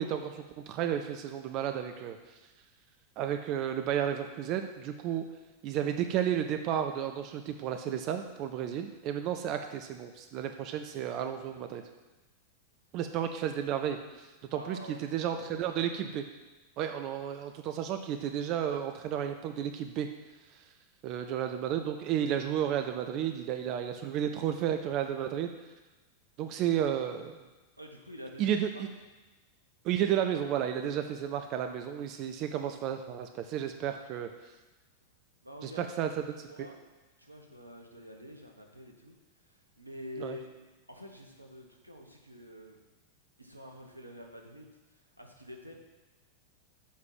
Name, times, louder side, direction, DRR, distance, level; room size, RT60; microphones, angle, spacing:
voice 1, 0.0-2.2 3.2-5.3 5.6-11.8 12.9-16.2 16.8-20.1 21.0-25.5 26.4-27.4 28.4-28.9 29.8-34.3 35.6-36.4 40.2-40.4, right 9 dB, 40° right, 6 dB, 0.6 m, -32 dB
voice 2, 14.5-15.7 22.2-22.4 27.8-28.8 33.9-34.0 35.4-35.9 36.4-36.8 37.2-40.5 40.9-42.8 43.4-45.7, equal, 85° right, 2 dB, 1.2 m, -47 dB
7.3 x 6.0 x 7.4 m, 1.2 s
figure-of-eight pair, 90°, 0 cm